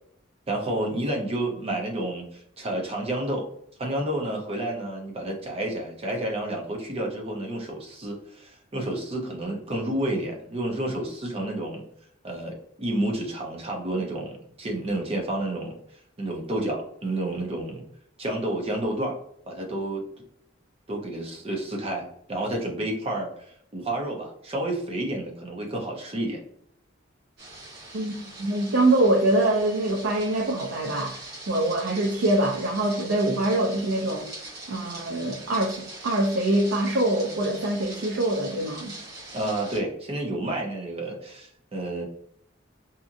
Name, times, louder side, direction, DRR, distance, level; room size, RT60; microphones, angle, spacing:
voice 1, 0.5-3.5 3.8-11.8 12.2-15.8 16.2-17.8 18.2-19.2 19.5-20.0 20.9-26.4 39.3-42.0, right 1 dB, 30° right, 0 dB, 0.6 m, -30 dB
sound 1, 27.4-39.8, right 2 dB, 55° right, 1.0 m, -42 dB
voice 2, 27.9-34.3 34.7-38.9, right 1 dB, 75° right, -1 dB, 0.5 m, -24 dB
2.8 x 2.5 x 2.4 m, 0.70 s
head